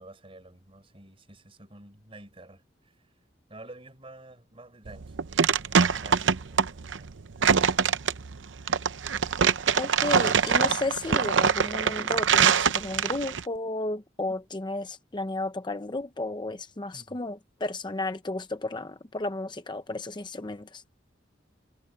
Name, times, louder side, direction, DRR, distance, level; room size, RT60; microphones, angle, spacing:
voice 1, 0.0-3.1 3.5-5.2 5.7-7.1 16.9-17.2, right 2 dB, 30° right, 4.3 m, -50 dB
sound 1, 4.9-13.4, right 6 dB, 85° right, 0.7 m, -24 dB
voice 2, 9.7-20.8, left 2 dB, 25° left, 0.7 m, -33 dB
head